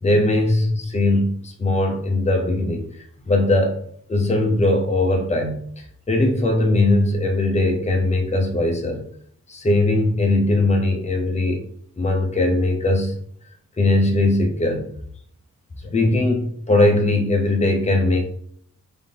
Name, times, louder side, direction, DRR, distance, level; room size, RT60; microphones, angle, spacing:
voice 1, 0.0-3.8 4.1-9.0 9.5-11.6 12.0-13.1 13.8-14.9 15.8-18.2, left 2 dB, 20° left, 2 dB, 0.7 m, -20 dB
3.5 x 2.7 x 3.8 m, 0.63 s
wide cardioid pair, 140°, 31 cm